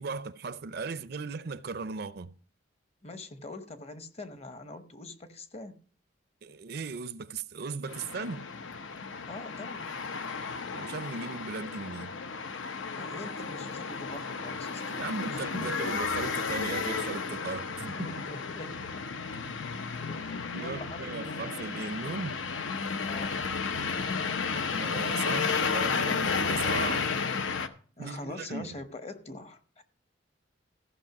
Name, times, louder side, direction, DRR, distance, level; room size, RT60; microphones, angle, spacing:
voice 1, 0.0-2.3 6.4-8.5 10.7-12.1 14.9-18.1 20.5-22.4 24.5-27.2 28.0-28.7, right 4 dB, 55° right, 0.5 m, -37 dB
voice 2, 3.0-5.8 9.3-9.9 12.9-14.8 15.3-15.7 17.5-17.6 17.9-18.7 20.1-21.5 23.0-23.4 28.0-29.8, left 2 dB, 35° left, 0.9 m, -43 dB
sound 1, 7.9-27.7, left 5 dB, 85° left, 0.8 m, -33 dB
14.5 x 5.6 x 5.9 m
head